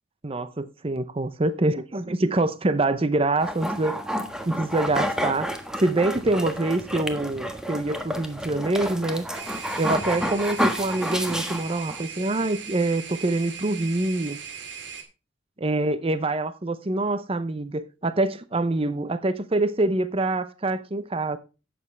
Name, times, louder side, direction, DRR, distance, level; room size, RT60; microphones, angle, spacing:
voice 1, 0.2-4.0 4.5-5.5 5.8-9.3 9.8-14.4 15.6-21.4, right 2 dB, 30° right, 0.7 m, -25 dB
sound 1, 3.4-12.0, equal, 5° right, 1.3 m, -30 dB
sound 2, 9.3-15.0, right 6 dB, 70° right, 2.3 m, -39 dB
12.0 x 8.6 x 3.3 m
head